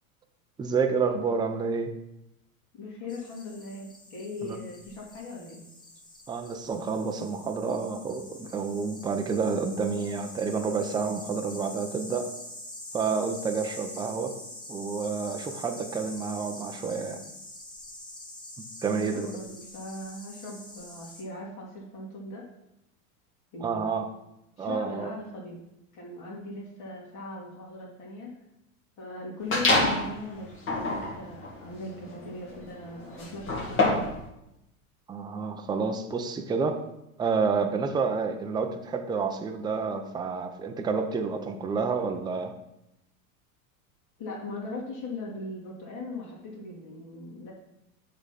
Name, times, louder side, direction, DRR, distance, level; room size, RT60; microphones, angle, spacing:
voice 1, 0.6-1.9 4.4-4.6 6.3-12.3 12.9-14.4 14.7-17.2 18.8-19.3 23.6-24.1 24.6-25.1 35.1-36.8 37.2-42.6, right 5 dB, 10° right, 4 dB, 0.5 m, -29 dB
voice 2, 2.7-5.6 18.9-22.5 23.5-23.9 24.6-25.6 25.9-28.3 29.0-33.9 44.2-47.5, left 2 dB, 45° left, -3 dB, 2.9 m, -39 dB
sound 1, 3.1-21.2, left 1 dB, 10° left, 1.0 m, -45 dB
sound 2, 29.5-30.1 30.6-34.2, left 2 dB, 30° left, 1.9 m, -27 dB
7.9 x 3.9 x 5.7 m, 0.87 s
supercardioid pair, 130°, 42 cm